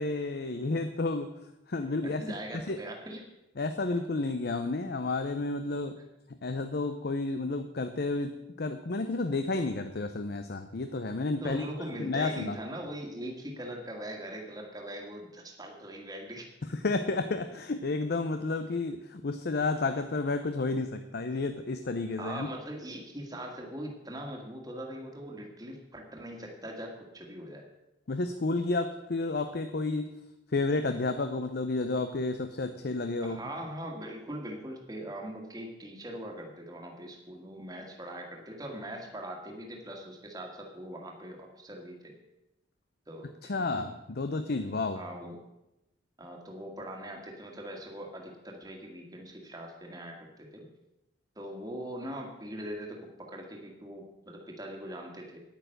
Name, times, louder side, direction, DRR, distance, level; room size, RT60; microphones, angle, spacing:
voice 1, 0.0-1.3 1.7-2.2 2.7-2.8 3.6-5.9 6.4-12.6 16.7-22.5 28.1-30.1 30.5-33.4 43.5-45.0, left 3 dB, 55° left, 8 dB, 0.6 m, -31 dB
voice 2, 2.0-3.2 11.3-16.5 22.2-27.6 33.2-42.1 43.1-43.3 43.6-43.9 44.9-45.4 46.2-50.6 51.4-55.4, right 1 dB, 20° right, 0 dB, 1.8 m, -41 dB
10.0 x 9.0 x 6.5 m, 0.91 s
head